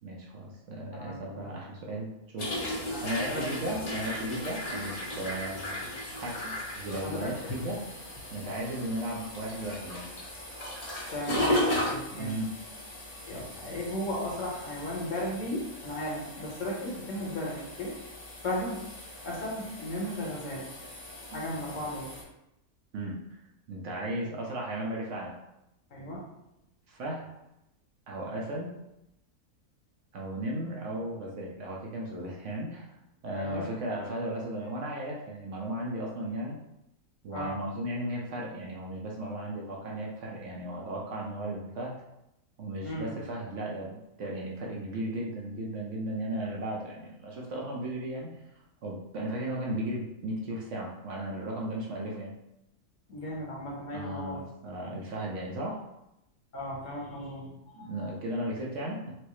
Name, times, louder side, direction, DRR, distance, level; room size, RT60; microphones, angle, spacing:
voice 1, 0.0-2.5 3.0-5.7 6.2-7.8 8.3-10.1 12.1-12.5 22.9-23.4 23.7-25.3 26.9-27.3 28.1-28.8 30.1-33.0 33.2-36.6 37.2-42.0 42.6-48.3 48.8-52.3 53.9-55.8 57.4-59.1, right 1 dB, 65° right, -2 dB, 0.9 m, -35 dB
voice 2, 0.9-1.5 2.8-3.5 7.0-7.5 11.1-12.4 13.2-18.0 18.4-18.8 19.2-20.7 21.3-22.1 25.9-26.2 33.3-33.6 37.3-37.6 42.8-43.1 53.1-54.4 56.5-58.1, left 1 dB, 60° left, -4 dB, 1.3 m, -36 dB
sound 1, 2.4-22.2, left 1 dB, 35° left, 0.6 m, -36 dB
4.6 x 2.0 x 3.0 m, 0.86 s
omnidirectional pair, 1.5 m